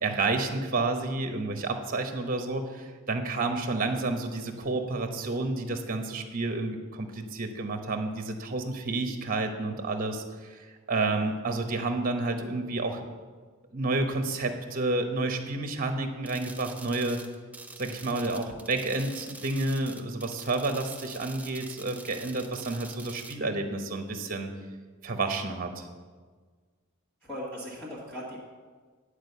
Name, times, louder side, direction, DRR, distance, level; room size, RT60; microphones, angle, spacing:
voice 1, 0.0-13.0 13.7-17.2 17.8-24.5 25.0-25.9, right 2 dB, 40° right, 5 dB, 1.0 m, -30 dB
sound 1, 16.3-23.4, right 3 dB, 5° right, 0.4 m, -46 dB
voice 2, 27.2-28.4, equal, 10° left, -7 dB, 1.7 m, -38 dB
10.5 x 4.9 x 8.0 m, 1.5 s
head